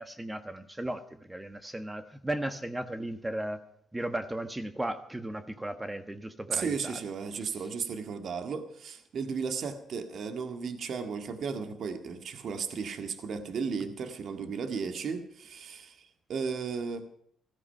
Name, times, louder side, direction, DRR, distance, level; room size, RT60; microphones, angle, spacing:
voice 1, 0.0-3.6 3.9-7.0, right 1 dB, 10° right, 11 dB, 1.3 m, -36 dB
voice 2, 6.5-17.1, right 5 dB, 60° right, 8 dB, 1.8 m, -35 dB
16.0 x 14.0 x 5.7 m, 0.66 s
cardioid pair, 90°, 0 cm